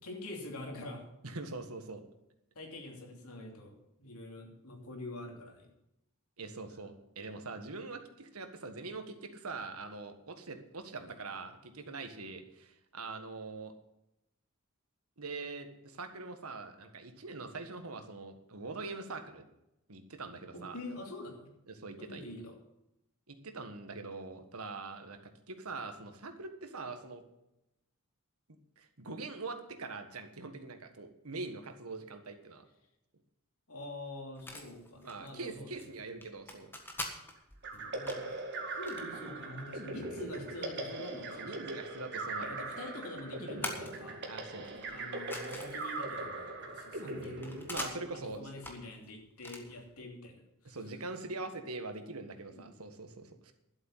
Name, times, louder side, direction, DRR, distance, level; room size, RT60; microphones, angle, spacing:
voice 1, 0.0-1.0 2.5-5.7 10.9-11.1 20.5-21.5 22.0-22.6 33.7-35.7 37.7-38.3 38.7-41.5 42.4-44.2 44.9-50.3 50.6-50.8 52.5-52.8, left 1 dB, 90° left, 1 dB, 2.9 m, -45 dB
voice 2, 1.2-2.0 6.4-13.7 15.2-19.4 19.9-20.8 21.7-22.2 23.3-25.2 25.5-27.2 28.8-32.6 35.0-36.7 41.4-42.6 44.3-44.7 47.7-48.4 50.6-53.5, right 3 dB, 90° right, 7 dB, 1.6 m, -43 dB
sound 1, 34.4-50.0, left 1 dB, 10° left, 1.6 m, -46 dB
sound 2, 37.6-48.2, right 2 dB, 50° right, 2.1 m, -40 dB
12.0 x 8.0 x 7.4 m, 0.87 s
head